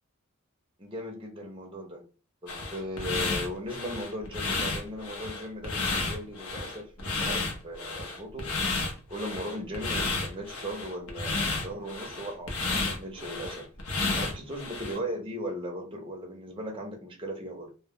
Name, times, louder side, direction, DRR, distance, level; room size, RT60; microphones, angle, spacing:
voice 1, 0.8-2.1 2.4-8.4 9.1-13.7 14.1-17.7, equal, 25° right, 0.5 m, -38 dB
sound 1, 2.5-15.0, left 3 dB, 85° left, 0.7 m, -32 dB
2.1 x 2.1 x 3.5 m
head